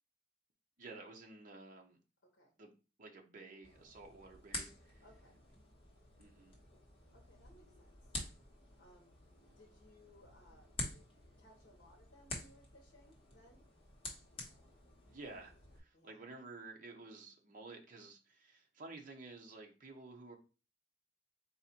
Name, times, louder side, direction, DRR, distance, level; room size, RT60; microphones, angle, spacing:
voice 1, 0.8-2.0 2.6-2.7 3.0-5.0 6.2-6.5 15.1-20.4, right 3 dB, 45° right, 1 dB, 0.8 m, -52 dB
voice 2, 2.2-2.5 5.0-5.4 7.1-8.1 8.8-9.1 9.5-11.1 11.4-13.6 15.9-16.2, left 1 dB, 60° left, -1 dB, 1.0 m, -64 dB
sound 1, 3.6-15.8, left 2 dB, 30° left, 1.2 m, -49 dB
4.2 x 2.5 x 4.2 m, 0.33 s
head